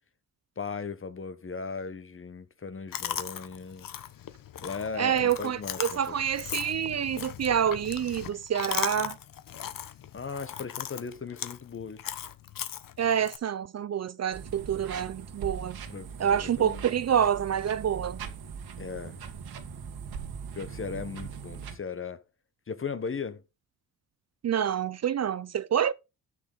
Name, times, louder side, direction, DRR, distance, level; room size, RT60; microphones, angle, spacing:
voice 1, 0.6-3.9 4.6-6.2 10.1-12.1 15.9-16.8 18.8-19.2 20.5-22.2 22.7-23.4, left 5 dB, 35° left, 1.2 m, -37 dB
Chewing mastication, 2.9-13.4, left 10 dB, 55° left, 1.0 m, -38 dB
voice 2, 5.0-9.2 13.0-15.8 16.2-18.2 24.4-25.9, right 9 dB, 40° right, 0.5 m, -27 dB
sound 1, 14.3-21.8, right 6 dB, 70° right, 1.9 m, -40 dB
11.5 x 6.6 x 3.9 m
cardioid pair, 75°, 39 cm